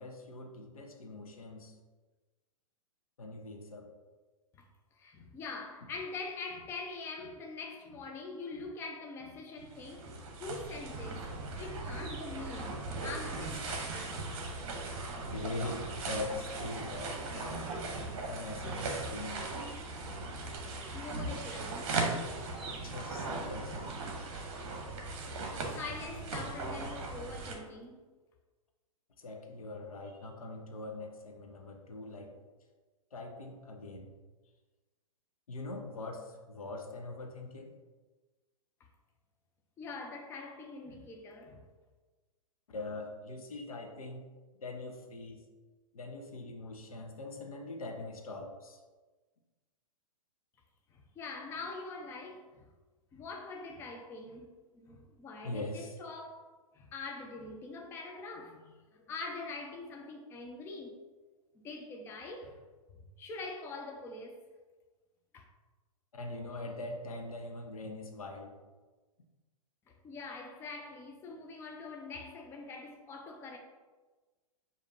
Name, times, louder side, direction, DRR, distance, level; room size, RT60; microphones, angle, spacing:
voice 1, 0.0-1.8 3.2-3.9 15.3-17.6 18.3-19.4 22.8-24.1 29.2-32.3 33.1-34.1 35.5-37.7 42.7-44.3 44.6-45.4 45.9-48.8 55.4-56.0 66.1-68.5, left 2 dB, 75° left, 0.8 m, -42 dB
voice 2, 5.0-14.2 20.9-22.3 22.9-23.0 25.1-25.2 25.7-28.1 39.8-41.6 50.9-52.7 53.1-56.5 56.7-61.0 61.5-62.6 63.2-64.4 65.3-65.4 69.9-73.6, left 3 dB, 15° left, 0.4 m, -44 dB
sound 1, 9.6-27.5, right 3 dB, 50° right, 0.9 m, -38 dB
6.5 x 2.6 x 2.7 m
figure-of-eight pair, 115°, 18 cm